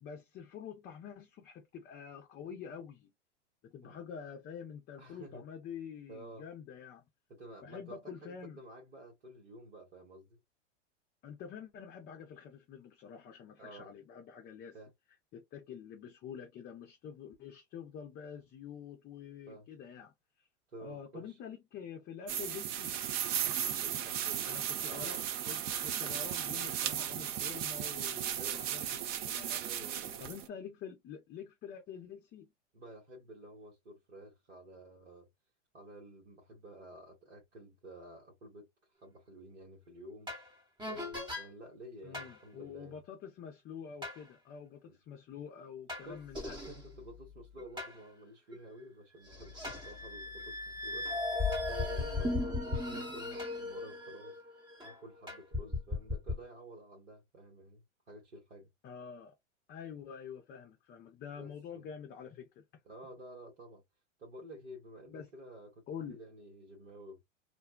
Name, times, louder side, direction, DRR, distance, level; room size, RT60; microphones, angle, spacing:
voice 1, 0.0-3.1 3.6-7.0 7.6-8.6 11.2-14.8 15.3-20.5 20.8-23.0 24.4-25.2 25.5-29.6 30.2-32.5 42.0-46.6 52.1-52.4 58.8-59.3 59.7-62.6 65.1-65.3 65.9-66.2, left 7 dB, 25° left, 0.6 m, -47 dB
voice 2, 5.0-5.4 6.1-6.5 7.3-10.4 13.6-13.9 14.7-14.9 19.5-19.7 20.7-21.4 23.8-25.3 28.4-28.7 29.6-30.2 32.7-35.3 35.7-40.3 40.9-43.0 44.9-45.0 46.0-46.3 46.7-51.1 51.7-54.4 54.8-58.7 61.3-61.9 62.8-63.8 64.2-67.2, right 1 dB, 75° right, 1.3 m, -51 dB
sound 1, 22.3-30.5, right 10 dB, 30° right, 0.3 m, -36 dB
sound 2, 40.3-40.5 40.8-41.5 42.1-42.4 44.0-44.2 45.9-47.9 48.5-48.6 49.3-55.0 55.3-56.4, left 2 dB, 10° right, 0.9 m, -37 dB
2.6 x 2.1 x 2.2 m
hypercardioid pair, 100°, 37 cm